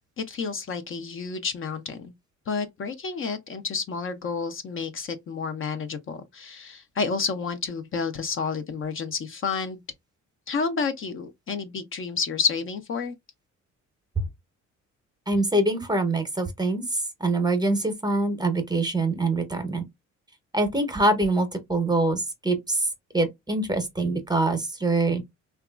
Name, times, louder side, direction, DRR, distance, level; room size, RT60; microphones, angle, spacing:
voice 1, 0.2-2.1 2.5-9.8 10.5-13.1, left 5 dB, 45° left, 0.5 m, -30 dB
voice 2, 15.3-19.8 20.5-22.9 23.1-25.2, right 2 dB, 15° right, 0.7 m, -24 dB
2.8 x 2.3 x 2.3 m
cardioid pair, 90°, 30 cm